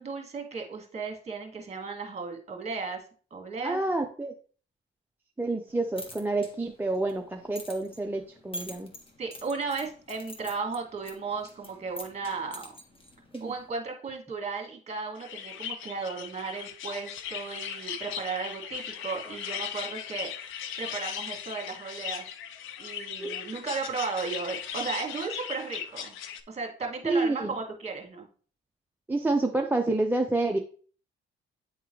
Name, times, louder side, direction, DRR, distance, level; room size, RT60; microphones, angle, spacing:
voice 1, 0.0-3.0 3.3-3.8 9.2-12.7 13.4-22.2 22.8-26.2 26.5-28.3, right 4 dB, 35° right, 2 dB, 2.1 m, -35 dB
voice 2, 3.6-4.3 5.4-8.9 13.3-13.5 23.2-23.3 27.0-27.6 29.1-30.6, right 2 dB, 10° right, 2 dB, 0.5 m, -28 dB
sound 1, 5.7-13.7, left 1 dB, 25° left, 1.5 m, -46 dB
sound 2, 15.2-26.4, left 9 dB, 85° left, 0.5 m, -38 dB
9.1 x 3.7 x 3.1 m, 0.42 s
cardioid pair, 90°, 20 cm